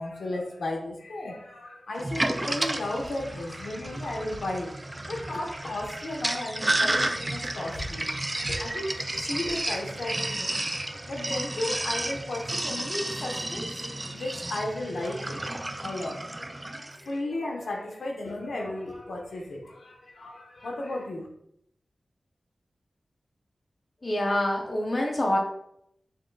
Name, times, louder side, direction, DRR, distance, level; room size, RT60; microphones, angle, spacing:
voice 1, 0.0-4.7 5.1-15.4 15.7-21.3, left 1 dB, 85° left, 0 dB, 0.9 m, -34 dB
Sink (filling or washing), 2.0-17.0, right 1 dB, 25° right, 0.4 m, -32 dB
voice 2, 24.0-25.4, left 1 dB, 45° left, 0 dB, 0.7 m, -26 dB
5.6 x 3.7 x 2.3 m, 0.74 s
wide cardioid pair, 80°, 0 cm